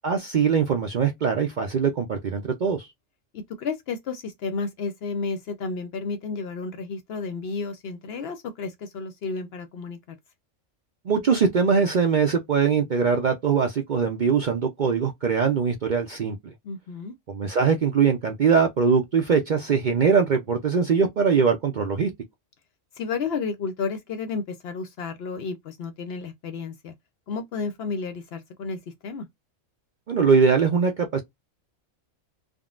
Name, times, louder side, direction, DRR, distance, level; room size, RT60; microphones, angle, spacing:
voice 1, 0.0-2.9 11.1-16.5 17.3-22.1 30.1-31.2, right 6 dB, 55° right, 0.5 m, -22 dB
voice 2, 3.3-10.0 16.6-17.2 23.0-26.9 27.3-29.3, left 4 dB, 60° left, 0.7 m, -32 dB
3.6 x 2.1 x 2.3 m
omnidirectional pair, 1.3 m